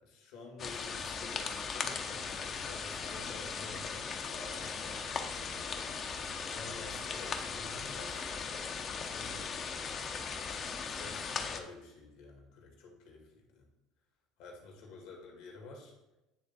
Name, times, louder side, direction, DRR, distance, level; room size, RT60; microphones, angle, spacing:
voice 1, 0.0-5.1 6.5-9.7 10.9-13.7 14.4-15.9, left 3 dB, 75° left, 0 dB, 2.0 m, -50 dB
sound 1, 0.6-11.6, left 5 dB, 45° left, 0.7 m, -38 dB
9.3 x 3.4 x 4.1 m, 0.97 s
supercardioid pair, 85°, 0 cm